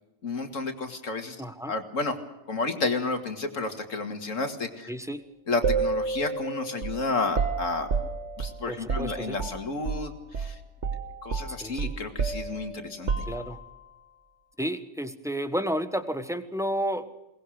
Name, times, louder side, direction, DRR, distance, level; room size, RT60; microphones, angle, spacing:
voice 1, 0.2-1.4 1.7-2.2 2.5-4.9 5.5-7.9 8.4-10.6 11.2-13.1, left 3 dB, 80° left, 6 dB, 2.5 m, -31 dB
voice 2, 1.4-1.7 4.9-5.2 8.7-9.4 11.5-11.9 13.3-13.6 14.6-17.1, equal, ahead, 9 dB, 1.2 m, -31 dB
sound 1, 5.6-10.1 10.3-10.6 10.8-13.8, right 5 dB, 65° right, 1.8 m, -30 dB
22.5 x 19.5 x 6.5 m, 0.97 s
omnidirectional pair, 1.3 m